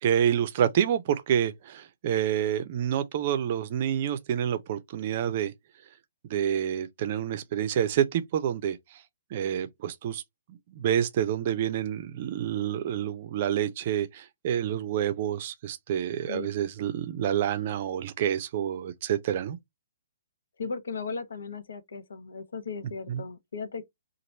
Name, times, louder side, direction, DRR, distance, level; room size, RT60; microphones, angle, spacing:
voice 1, 0.0-5.5 6.3-8.8 9.3-10.2 10.8-19.6 23.1-23.2, right 9 dB, 40° right, 0.5 m, -28 dB
voice 2, 20.6-23.8, left 4 dB, 60° left, 0.8 m, -36 dB
3.0 x 2.5 x 4.0 m
figure-of-eight pair, 125°, 0 cm